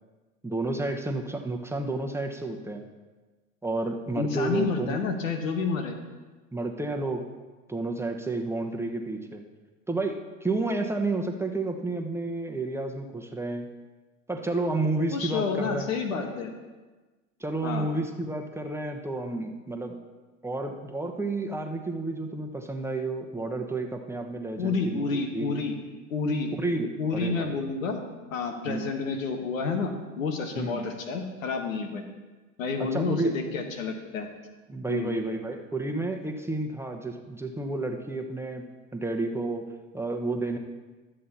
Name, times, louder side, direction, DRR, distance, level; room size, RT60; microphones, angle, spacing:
voice 1, 0.4-2.9 3.6-5.0 6.5-7.2 7.7-9.4 9.9-13.7 14.3-15.9 17.4-20.0 20.4-25.6 26.5-27.6 28.7-28.9 30.6-30.8 32.8-33.4 34.7-38.6 38.9-39.6 39.9-40.6, right 2 dB, 5° right, 3 dB, 1.0 m, -31 dB
voice 2, 4.1-5.9 15.1-16.5 17.6-17.9 24.6-25.7 26.1-26.5 27.0-28.0 28.3-32.0 32.6-34.3 34.9-35.1, left 4 dB, 85° left, 5 dB, 1.4 m, -29 dB
12.5 x 7.7 x 4.2 m, 1.3 s
hypercardioid pair, 85°, 39 cm